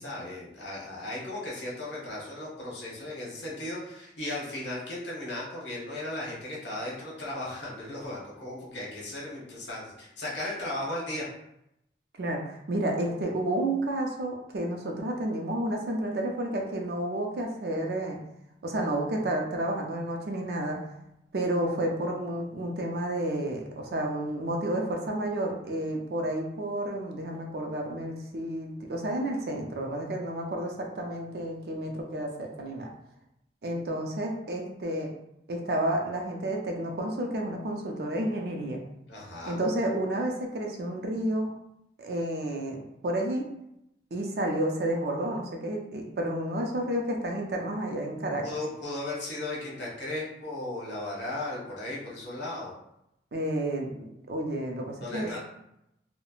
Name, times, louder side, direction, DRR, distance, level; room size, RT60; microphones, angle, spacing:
voice 1, 0.0-11.3 39.1-39.6 48.4-52.7 55.0-55.4, left 1 dB, 70° left, -5 dB, 1.0 m, -36 dB
voice 2, 12.2-18.2 18.6-20.8 21.3-32.9 33.6-35.1 35.5-38.8 39.4-41.5 42.0-43.5 44.1-48.4 53.3-55.4, right 1 dB, 55° right, 1 dB, 0.4 m, -31 dB
3.0 x 2.1 x 2.3 m, 0.81 s
head